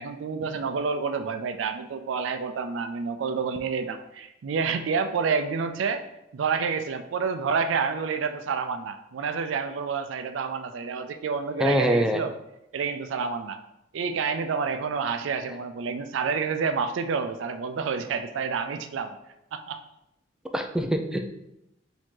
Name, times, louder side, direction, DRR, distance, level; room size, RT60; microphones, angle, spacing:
voice 1, 0.0-6.0 6.3-12.3 12.7-13.6 13.9-19.2 19.5-19.8, right 5 dB, 85° right, 8 dB, 0.4 m, -29 dB
voice 2, 11.6-12.2 20.5-21.2, equal, 5° right, 4 dB, 0.3 m, -23 dB
5.0 x 2.8 x 3.7 m, 0.85 s
head